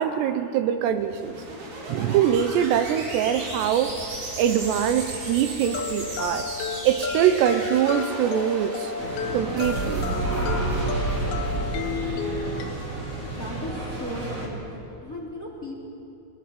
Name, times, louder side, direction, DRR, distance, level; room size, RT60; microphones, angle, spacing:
voice 1, 0.0-1.4 1.9-4.0 4.4-6.5 6.8-8.9 9.3-10.1, right 9 dB, 80° right, 10 dB, 2.8 m, -23 dB
sound 1, 0.9-13.2, right 3 dB, 65° right, 5.7 m, -33 dB
sound 2, 5.6-12.7, left 6 dB, 85° left, 3.7 m, -32 dB
sound 3, 9.0-14.5, right 2 dB, 20° right, 2.8 m, -33 dB
voice 2, 13.4-15.8, left 1 dB, 20° left, -2 dB, 2.9 m, -36 dB
23.0 x 19.0 x 7.7 m, 2.9 s
omnidirectional pair, 5.1 m